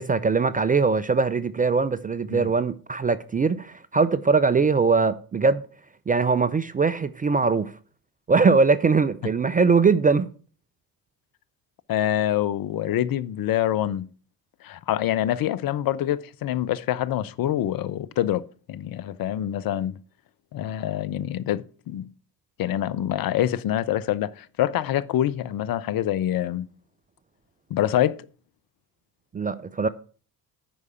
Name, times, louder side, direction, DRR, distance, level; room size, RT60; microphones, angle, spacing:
voice 1, 0.0-5.6 6.1-7.7 8.3-10.3 29.3-29.9, right 4 dB, 20° right, 0.4 m, -21 dB
voice 2, 11.9-14.0 14.6-20.0 20.5-22.1 22.6-26.7 27.7-28.3, left 12 dB, 45° left, 0.6 m, -26 dB
10.0 x 4.8 x 7.7 m
hypercardioid pair, 50°, 50 cm